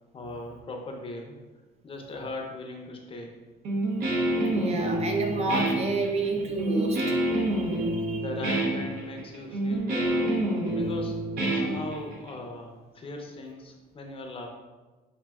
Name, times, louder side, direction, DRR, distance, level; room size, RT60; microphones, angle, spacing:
voice 1, 0.1-1.4 1.8-3.3 8.2-10.3 10.7-11.2 11.5-14.5, left 2 dB, 35° left, 2 dB, 0.5 m, -38 dB
Guitar, 3.7-12.3, right 1 dB, 65° right, 1.0 m, -27 dB
voice 2, 4.5-8.2, right 3 dB, 40° right, 3 dB, 0.5 m, -30 dB
5.1 x 2.6 x 2.3 m, 1.2 s
cardioid pair, 110°, 17 cm